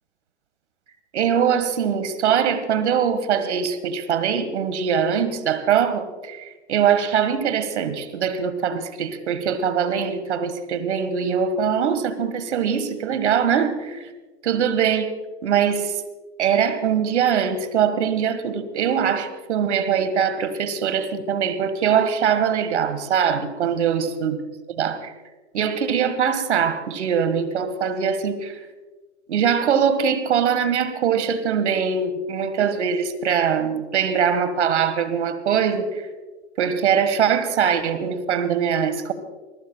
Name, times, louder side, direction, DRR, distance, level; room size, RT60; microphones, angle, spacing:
voice 1, 1.1-14.1 14.4-15.1 15.4-16.0 16.4-24.4 24.8-25.1 25.5-28.6 29.3-36.0 36.6-39.1, right 7 dB, 75° right, 12 dB, 1.6 m, -22 dB
21.5 x 20.0 x 2.3 m, 1.3 s
hypercardioid pair, 110°, 34 cm